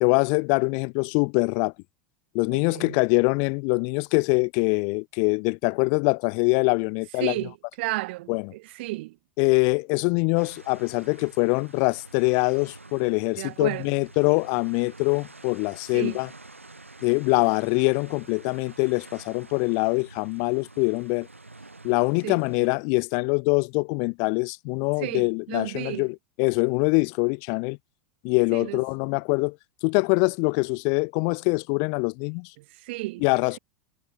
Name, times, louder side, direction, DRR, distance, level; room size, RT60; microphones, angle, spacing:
voice 1, 0.0-1.7 2.3-7.4 8.3-8.4 9.4-16.3 17.0-21.3 21.8-27.8 28.2-29.6 29.8-32.5 33.2-33.6, left 40 dB or more, 50° left, 0.7 m, -24 dB
voice 2, 2.5-3.0 7.2-9.2 13.4-14.0 15.9-16.2 22.2-22.4 25.0-26.1 28.5-28.8 32.6-33.2, right 20 dB, 55° right, 1.9 m, -33 dB
sound 1, 10.4-22.7, right 2 dB, 90° right, 1.5 m, -48 dB
figure-of-eight pair, 85°, 7 cm